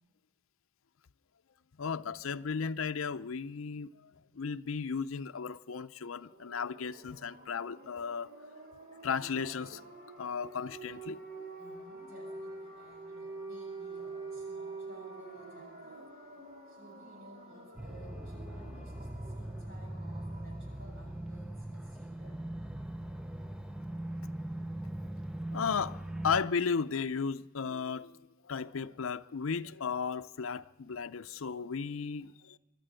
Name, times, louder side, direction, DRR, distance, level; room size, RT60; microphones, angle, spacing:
voice 1, 1.8-8.3 9.0-11.5 25.5-26.0 26.2-28.2 28.4-32.6, left 5 dB, 70° left, 0.6 m, -35 dB
sound 1, 6.0-20.8, right 3 dB, 45° right, 4.4 m, -47 dB
voice 2, 11.6-16.2 16.7-22.4, equal, 75° right, 7.1 m, -56 dB
sound 2, 17.8-26.4, right 1 dB, 5° right, 0.6 m, -40 dB
25.0 x 11.5 x 8.9 m
head